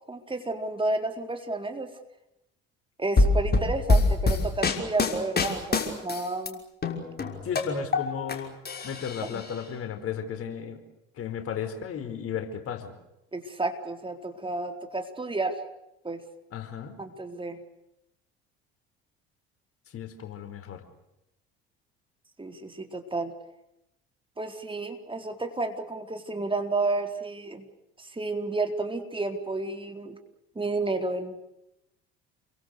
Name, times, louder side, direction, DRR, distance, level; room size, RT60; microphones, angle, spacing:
voice 1, 0.1-1.9 3.0-6.6 9.3-9.4 13.3-15.6 16.0-16.2 17.0-17.6 22.4-23.3 24.4-27.7 28.0-30.2 30.6-31.4, right 2 dB, 15° right, 5 dB, 4.1 m, -31 dB
sound 1, 3.2-6.5 6.8-8.4 8.7-9.5, left 3 dB, 30° left, 6.0 m, -24 dB
voice 2, 7.4-8.5 8.8-10.8 11.1-12.9 16.5-17.0 19.9-20.8, left 7 dB, 45° left, 8 dB, 4.9 m, -34 dB
29.5 x 23.5 x 6.8 m, 0.88 s
hypercardioid pair, 60°, 31 cm